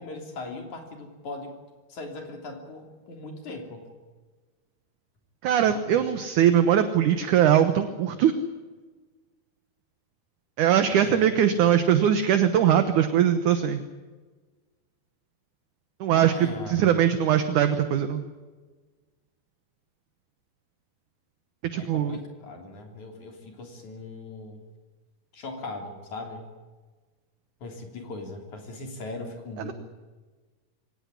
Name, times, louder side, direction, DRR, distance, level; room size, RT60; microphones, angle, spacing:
voice 1, 0.0-1.5 1.9-3.9 5.7-6.1 11.0-11.4 16.1-17.0 21.8-24.6 25.3-26.4 27.6-29.7, left 2 dB, 50° left, 3 dB, 4.5 m, -39 dB
voice 2, 5.4-8.3 10.6-13.8 16.0-18.2 21.7-22.2 29.7-29.8, right 9 dB, 65° right, 9 dB, 2.3 m, -21 dB
23.5 x 18.0 x 9.8 m, 1.3 s
omnidirectional pair, 4.4 m